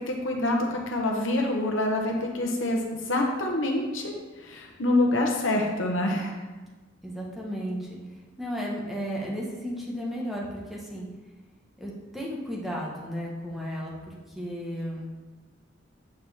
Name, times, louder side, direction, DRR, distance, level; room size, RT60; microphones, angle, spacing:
voice 1, 0.0-4.1 4.4-6.3, left 1 dB, 80° left, 1 dB, 1.1 m, -26 dB
voice 2, 7.0-8.0 8.4-11.1 11.8-15.1, equal, ahead, -4 dB, 1.2 m, -34 dB
8.3 x 4.5 x 3.5 m, 1.2 s
head